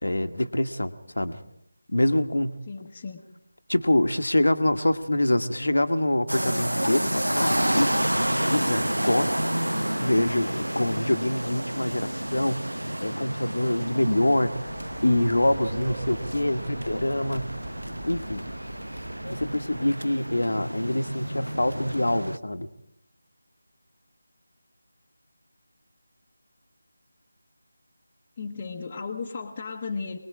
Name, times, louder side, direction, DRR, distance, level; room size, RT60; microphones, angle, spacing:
voice 1, 0.0-1.4 1.9-2.6 3.7-8.0 8.2-9.3 10.0-12.7 13.0-14.5 15.0-17.5 18.1-18.4 19.3-22.7, left 1 dB, 65° left, 9 dB, 1.4 m, -25 dB
voice 2, 2.7-3.2 28.4-30.2, left 4 dB, 20° left, -3 dB, 1.3 m, -35 dB
sound 1, 6.3-22.4, right 1 dB, 80° right, 0.8 m, -30 dB
sound 2, 14.1-20.1, right 2 dB, 20° right, 1.6 m, -43 dB
26.0 x 20.5 x 4.9 m, 0.78 s
figure-of-eight pair, 160°, 0 cm